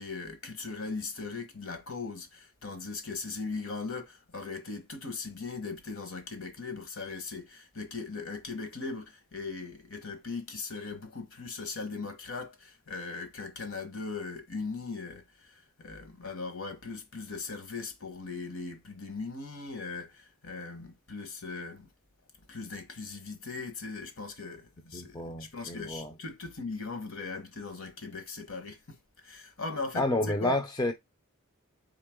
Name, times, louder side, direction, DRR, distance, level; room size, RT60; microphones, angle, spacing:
voice 1, 0.0-15.2 15.8-21.9 22.5-29.0 29.2-30.5, left 4 dB, 65° left, 1.3 m, -39 dB
voice 2, 24.9-26.1 29.9-30.9, left 2 dB, 20° left, 0.5 m, -30 dB
3.8 x 3.3 x 3.6 m
head